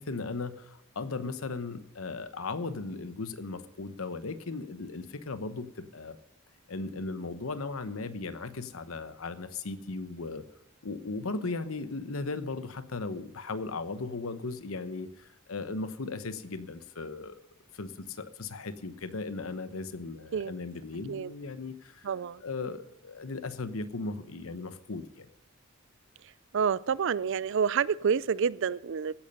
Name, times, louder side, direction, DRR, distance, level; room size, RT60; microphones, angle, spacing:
voice 1, 0.0-6.2 6.7-10.4 10.8-17.4 17.7-22.1 22.4-25.3, left 3 dB, 85° left, 1.0 m, -37 dB
voice 2, 22.0-22.4 26.5-29.1, right 6 dB, 65° right, 0.4 m, -28 dB
15.5 x 11.0 x 5.4 m
head